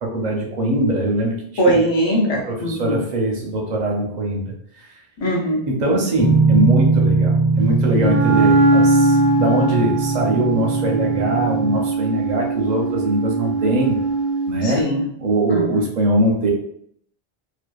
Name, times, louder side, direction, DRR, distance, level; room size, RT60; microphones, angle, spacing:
voice 1, 0.0-1.7 2.5-4.5 4.8-4.9 5.7-14.0 14.5-14.9 15.2-16.5, right 1 dB, 55° right, 0 dB, 0.6 m, -22 dB
voice 2, 1.6-3.0 5.2-5.6 14.6-15.1 15.5-15.8, right 1 dB, 40° left, -1 dB, 0.4 m, -20 dB
sound 1, 6.2-11.8, right 3 dB, 90° left, 1.3 m, -20 dB
Wind instrument woodwind instrument, 8.0-14.6, right 3 dB, 85° right, 0.8 m, -20 dB
2.6 x 2.2 x 2.2 m, 0.68 s
omnidirectional pair, 1.0 m